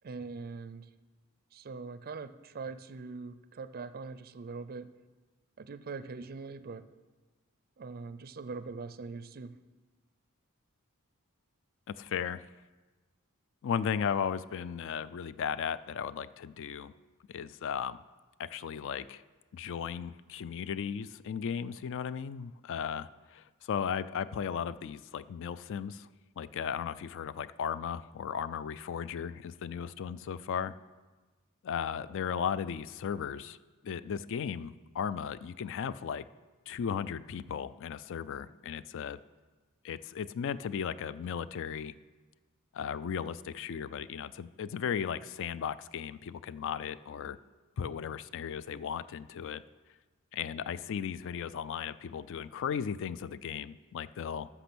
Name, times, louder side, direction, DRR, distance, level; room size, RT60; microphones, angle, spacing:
voice 1, 0.0-0.9 1.5-4.9 5.6-6.9 7.8-9.6, right 4 dB, 40° right, 13 dB, 0.4 m, -42 dB
voice 2, 11.9-12.4 13.6-16.9 17.3-18.0 18.4-19.2 19.5-26.1 26.4-30.7 31.6-33.6 33.8-36.2 36.7-39.2 39.8-41.9 42.7-47.4 47.8-49.6 50.3-54.5, left 7 dB, 60° left, 16 dB, 0.3 m, -36 dB
13.5 x 6.0 x 6.1 m, 1.3 s
head